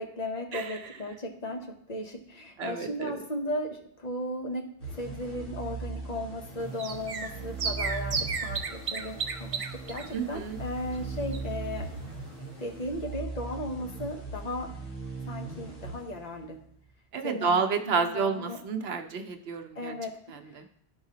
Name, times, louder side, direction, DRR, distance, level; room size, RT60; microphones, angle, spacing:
voice 1, 0.0-4.7 5.0-11.9 12.6-14.7 15.3-16.6 17.2-18.6 19.8-20.2, left 1 dB, 45° left, 2 dB, 0.9 m, -36 dB
voice 2, 2.6-3.1 10.1-10.6 17.1-19.9 20.6-20.7, right 5 dB, 75° right, 6 dB, 0.9 m, -30 dB
sound 1, 4.8-16.7, right 4 dB, 60° left, 1.5 m, -39 dB
sound 2, 6.6-11.8 12.1-12.2 12.4-12.5, right 5 dB, 45° right, 0.4 m, -35 dB
11.5 x 4.8 x 2.8 m, 0.67 s
omnidirectional pair, 1.1 m